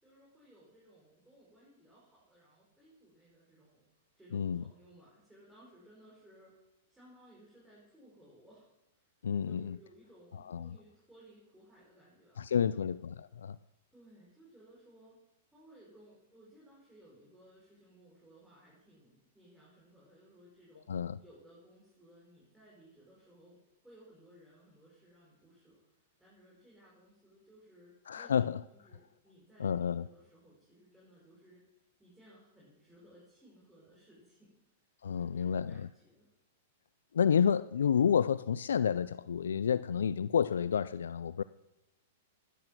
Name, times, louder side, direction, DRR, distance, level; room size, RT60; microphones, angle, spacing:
voice 1, 0.0-3.9 4.2-6.6 6.9-9.0 9.4-12.9 13.9-15.2 15.5-28.5 28.7-31.6 32.0-34.6 35.0-36.3, equal, 5° right, 6.0 m, -60 dB
voice 2, 4.3-4.6 9.2-9.8 10.5-10.8 12.4-13.6 20.9-21.2 28.1-28.6 29.6-30.1 35.0-35.9 37.1-41.4, left 7 dB, 80° left, 0.3 m, -30 dB
11.0 x 11.0 x 6.2 m
hypercardioid pair, 110°, 0 cm